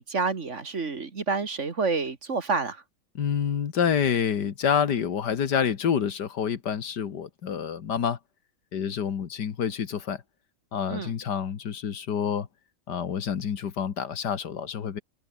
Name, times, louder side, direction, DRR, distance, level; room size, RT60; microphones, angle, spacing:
voice 1, 0.0-2.8 10.9-11.1, right 4 dB, 45° right, 2.0 m, -28 dB
voice 2, 3.2-8.2 8.7-10.2 10.7-12.5 12.9-15.0, left 7 dB, 75° left, 2.1 m, -27 dB
omnidirectional pair, 1.9 m